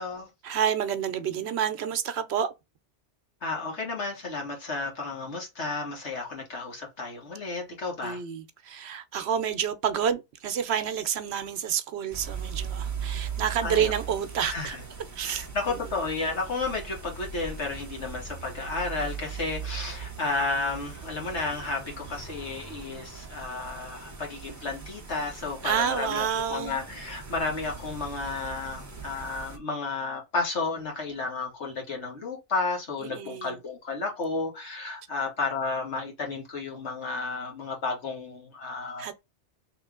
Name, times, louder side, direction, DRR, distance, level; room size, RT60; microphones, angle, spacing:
voice 1, 0.4-2.5 8.0-14.8 15.2-15.8 25.6-26.8 33.0-33.6 39.0-39.1, right 8 dB, 70° right, 0.9 m, -29 dB
voice 2, 3.4-8.2 13.6-13.9 14.4-14.8 15.2-39.1, left 3 dB, 75° left, 1.7 m, -32 dB
sound 1, 12.1-29.6, right 6 dB, 20° right, 0.5 m, -39 dB
3.1 x 3.0 x 3.6 m
omnidirectional pair, 1.2 m